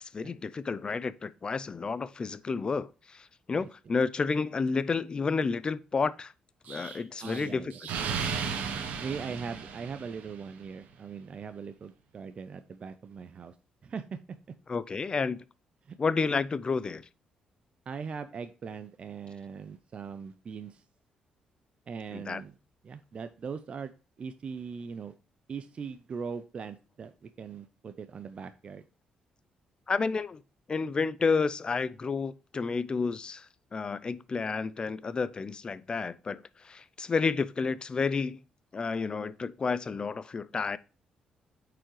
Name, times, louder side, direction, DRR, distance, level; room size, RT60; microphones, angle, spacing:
voice 1, 0.0-6.3 6.7-7.7 14.7-15.4 16.0-17.1 22.1-22.4 29.9-30.4 30.7-33.5 33.7-38.4 38.7-40.8, left 4 dB, 35° left, 0.5 m, -30 dB
Explosion, 6.7-10.5, right 6 dB, 80° right, 1.0 m, -35 dB
voice 2, 7.2-7.7 8.5-13.5 13.8-14.2 15.9-16.0 17.9-20.8 21.9-22.5 22.8-23.9 24.2-25.1 25.5-28.8, right 6 dB, 50° right, 0.5 m, -40 dB
8.6 x 4.8 x 3.1 m
cardioid pair, 80°, 3 cm